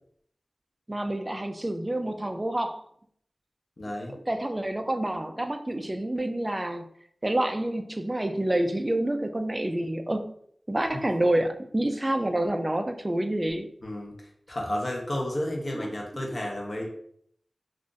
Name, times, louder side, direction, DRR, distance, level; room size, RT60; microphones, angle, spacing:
voice 1, 0.9-2.8 4.3-6.9 7.2-10.3 10.7-13.7 15.7-15.9, right 1 dB, 25° right, 7 dB, 0.3 m, -28 dB
voice 2, 3.8-4.1 10.9-11.0 13.8-16.9, left 1 dB, 45° left, -1 dB, 0.7 m, -32 dB
2.4 x 2.4 x 3.8 m, 0.66 s
wide cardioid pair, 75°, 0 cm